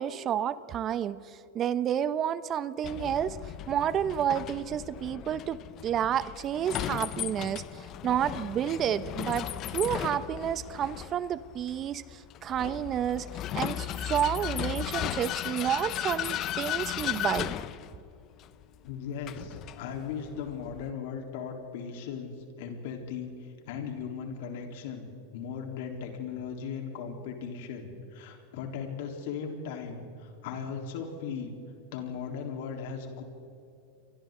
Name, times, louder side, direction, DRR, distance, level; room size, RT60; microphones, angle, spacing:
voice 1, 0.0-3.4 3.7-5.6 5.8-13.3 13.5-17.5, right 9 dB, 35° right, 16 dB, 0.8 m, -30 dB
Vehicle, 2.8-20.9, left 12 dB, 40° left, 0.9 m, -36 dB
voice 2, 18.8-22.3 22.6-31.6 31.9-33.2, left 6 dB, 65° left, 3 dB, 3.7 m, -38 dB
29.0 x 24.0 x 3.9 m, 2.8 s
hypercardioid pair, 100°, 0 cm